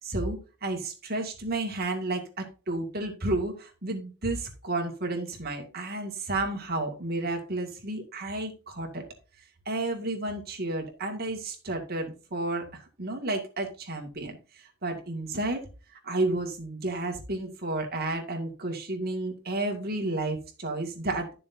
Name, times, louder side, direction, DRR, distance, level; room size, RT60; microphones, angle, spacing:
voice 1, 0.0-9.0 9.7-15.6 16.0-21.3, right 2 dB, 45° right, 2.2 m, -32 dB
12.0 x 7.0 x 2.7 m
head